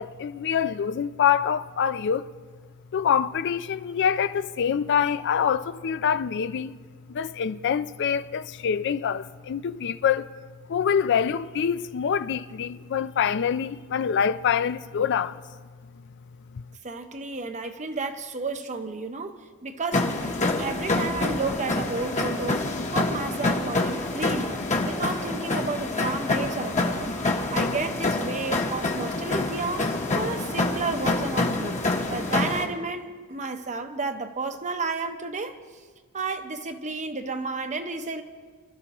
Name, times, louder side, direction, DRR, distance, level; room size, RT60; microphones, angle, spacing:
voice 1, 0.0-2.3 2.9-6.7 7.1-10.3 10.7-15.4 16.5-16.6, left 7 dB, 55° left, 0.4 m, -25 dB
voice 2, 16.8-22.6 22.9-27.1 27.5-31.8 32.1-35.6 36.1-38.2, right 3 dB, 35° right, 0.9 m, -32 dB
sound 1, 19.9-32.6, left 2 dB, 35° left, 1.2 m, -27 dB
25.5 x 12.5 x 3.0 m
head